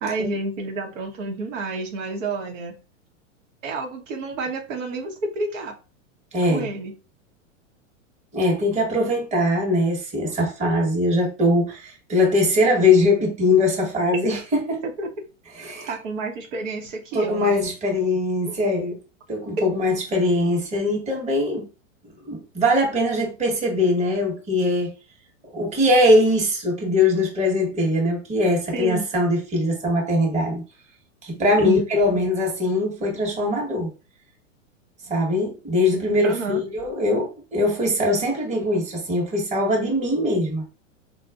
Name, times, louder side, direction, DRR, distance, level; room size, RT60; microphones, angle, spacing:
voice 1, 0.0-2.8 3.6-5.7 6.5-6.9 14.8-15.1 15.6-17.7 28.7-29.1 31.6-31.8 32.1-32.2 36.2-36.6, right 3 dB, 75° right, 1.1 m, -30 dB
voice 2, 6.3-6.7 8.3-14.8 15.5-15.9 17.1-19.0 19.3-21.7 22.2-24.9 25.5-30.6 31.2-33.9 35.1-40.6, left 1 dB, 20° right, 1.1 m, -21 dB
4.1 x 2.3 x 2.3 m
hypercardioid pair, 120°, 39 cm